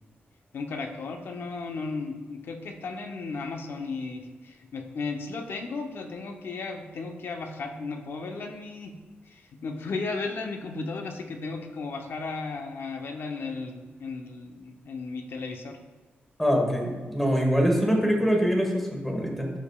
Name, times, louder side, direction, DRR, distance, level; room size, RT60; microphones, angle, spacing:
voice 1, 0.5-9.0 9.3-15.8, left 3 dB, 65° left, 4 dB, 0.8 m, -35 dB
voice 2, 16.4-19.5, equal, 5° left, 1 dB, 1.4 m, -24 dB
12.5 x 5.0 x 2.3 m, 1.4 s
wide cardioid pair, 120°, 4 cm